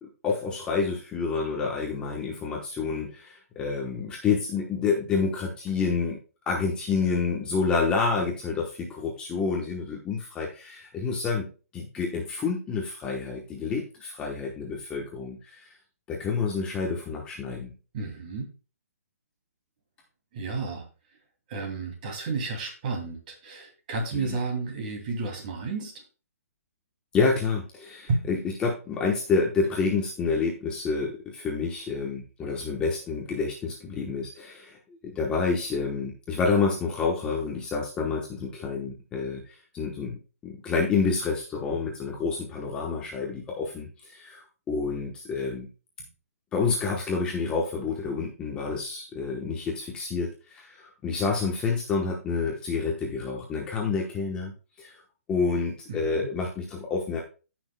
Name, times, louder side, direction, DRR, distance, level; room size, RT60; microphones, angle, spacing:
voice 1, 0.0-6.2 6.5-11.5 11.7-15.7 16.1-17.7 24.1-24.4 27.1-34.8 35.0-45.7 46.5-55.0 55.3-57.2, left 4 dB, 10° left, -1 dB, 1.0 m, -28 dB
voice 2, 17.9-18.5 20.3-20.9 21.5-25.9 28.1-28.2 46.0-46.1 55.9-56.3, right 3 dB, 35° right, 3 dB, 2.6 m, -32 dB
15.5 x 6.1 x 2.2 m, 0.34 s
hypercardioid pair, 165°, 8 cm